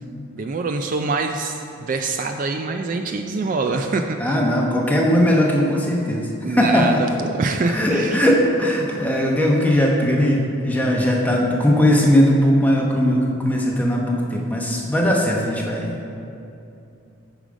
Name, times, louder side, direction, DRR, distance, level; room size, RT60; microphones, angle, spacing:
voice 1, 0.3-4.4 6.4-8.2, right 3 dB, 40° right, 5 dB, 0.3 m, -25 dB
voice 2, 4.2-7.0 7.7-16.0, equal, 10° left, -2 dB, 0.8 m, -19 dB
8.9 x 4.9 x 5.1 m, 2.7 s
head